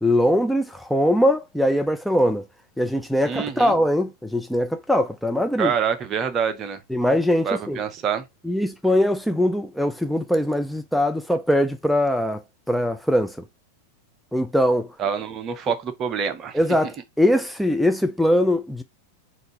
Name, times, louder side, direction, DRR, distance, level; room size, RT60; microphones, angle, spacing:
voice 1, 0.0-2.4 2.8-5.7 6.9-7.8 8.4-12.4 12.7-13.4 14.3-14.9 16.5-18.8, left 1 dB, ahead, 0.3 m, -21 dB
voice 2, 3.2-3.8 5.6-6.8 7.4-8.2 15.0-16.6, right 7 dB, 30° right, 0.7 m, -26 dB
3.8 x 2.5 x 3.8 m
figure-of-eight pair, 90°, 0 cm